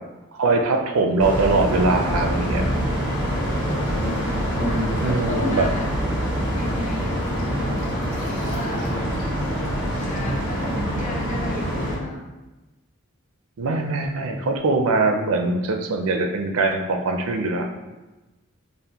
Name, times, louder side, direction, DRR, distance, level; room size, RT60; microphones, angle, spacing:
voice 1, 0.3-2.7 5.0-5.7 13.6-17.7, right 3 dB, 75° right, 4 dB, 0.5 m, -22 dB
sound 1, 1.2-12.0, equal, 55° left, 1.4 m, -25 dB
sound 2, 2.3-10.2, right 1 dB, 75° left, 1.1 m, -37 dB
voice 2, 4.6-5.9 6.5-8.8 9.8-12.3, left 2 dB, 35° left, 0 dB, 0.5 m, -34 dB
5.2 x 2.1 x 2.9 m, 1.1 s
head